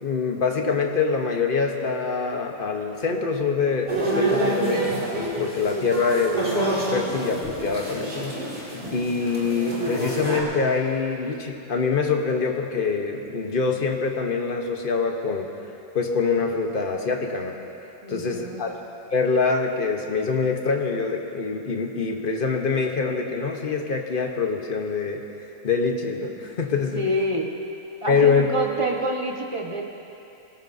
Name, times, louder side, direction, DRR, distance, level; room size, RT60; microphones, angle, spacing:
voice 1, 0.0-15.5 15.9-18.8 19.1-25.2 25.6-27.0 28.1-28.5, left 4 dB, 40° left, 3 dB, 1.1 m, -25 dB
sound 1, 3.9-10.4, right 1 dB, 45° right, 2.6 m, -27 dB
voice 2, 18.0-18.6 26.9-27.5 28.0-29.8, equal, 25° right, -1 dB, 1.1 m, -27 dB
21.0 x 17.5 x 2.7 m, 2.8 s
omnidirectional pair, 1.5 m